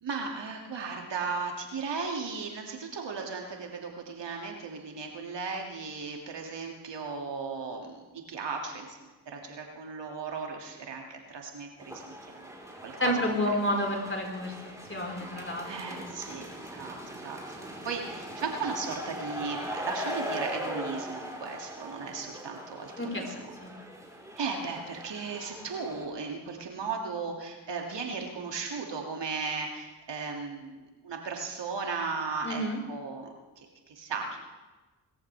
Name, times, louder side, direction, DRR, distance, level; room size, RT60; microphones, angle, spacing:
voice 1, 0.0-9.0 9.3-12.5 12.8-13.1 15.6-23.5 24.4-32.6 32.9-34.4, right 4 dB, 60° right, 1 dB, 2.6 m, -36 dB
sound 1, 11.8-26.0, equal, 5° right, 4.4 m, -40 dB
voice 2, 13.0-14.5 14.9-16.0 23.0-23.7 32.4-32.8, equal, 25° left, 0 dB, 4.9 m, -30 dB
20.5 x 14.0 x 3.5 m, 1.2 s
hypercardioid pair, 40°, 48 cm